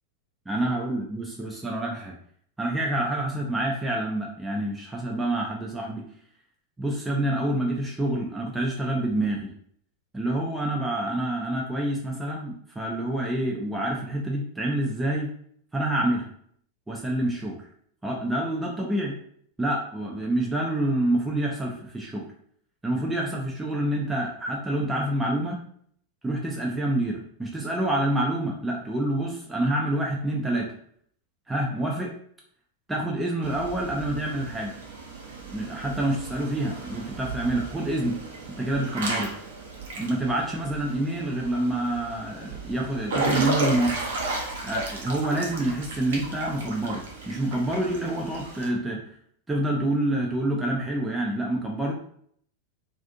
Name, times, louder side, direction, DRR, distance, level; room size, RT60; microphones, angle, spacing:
voice 1, 0.5-2.1 2.6-6.0 6.8-9.5 10.1-15.3 15.7-16.3 16.9-17.6 18.0-19.2 19.6-22.3 22.8-25.6 26.2-30.7 31.5-32.1 32.9-34.8 35.5-38.2 38.6-39.3 40.0-44.0 44.6-49.0 49.5-51.9, right 1 dB, 10° right, -2 dB, 0.4 m, -27 dB
Water / Splash splatter / Drip, 33.4-48.7, right 3 dB, 60° right, 0.6 m, -34 dB
2.5 x 2.5 x 2.5 m, 0.64 s
figure-of-eight pair, 90°, 0 cm